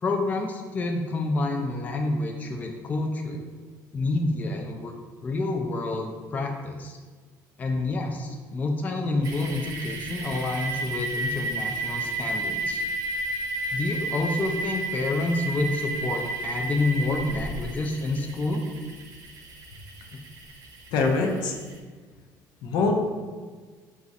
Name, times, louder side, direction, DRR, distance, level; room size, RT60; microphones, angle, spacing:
voice 1, 0.0-3.4 3.9-4.9 5.2-7.0 7.6-12.8 13.7-18.6 20.1-20.2, left 2 dB, 20° left, 2 dB, 0.3 m, -28 dB
sound 1, 9.2-21.7, right 2 dB, 55° right, 0.7 m, -33 dB
voice 2, 20.9-21.5 22.6-22.9, left 4 dB, 75° left, 2 dB, 0.6 m, -23 dB
4.0 x 2.4 x 4.0 m, 1.5 s
cardioid pair, 145°, 7 cm